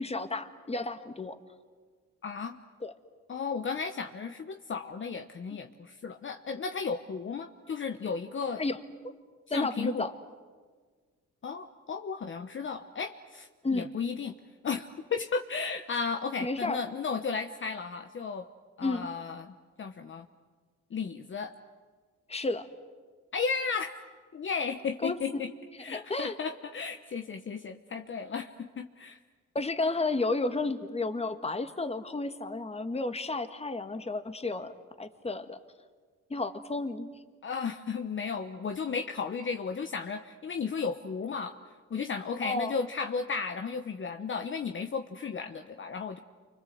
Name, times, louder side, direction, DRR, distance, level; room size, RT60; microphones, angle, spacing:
voice 1, 0.0-1.4 2.8-2.9 8.6-8.8 9.0-9.1 9.5-10.1 13.6-13.9 16.4-16.8 18.8-19.1 22.3-22.7 25.0-25.2 25.9-26.4 29.6-35.6 36.3-37.1 42.4-42.8, left 2 dB, 20° left, 8 dB, 1.8 m, -32 dB
voice 2, 2.2-2.6 3.3-8.7 9.5-10.1 11.4-14.4 14.6-18.5 18.8-20.3 20.9-21.5 23.3-23.9 24.3-25.5 25.8-29.2 37.4-41.6 41.9-46.2, left 5 dB, 40° left, 6 dB, 1.1 m, -34 dB
30.0 x 24.5 x 7.8 m, 1.5 s
cardioid pair, 90°, 30 cm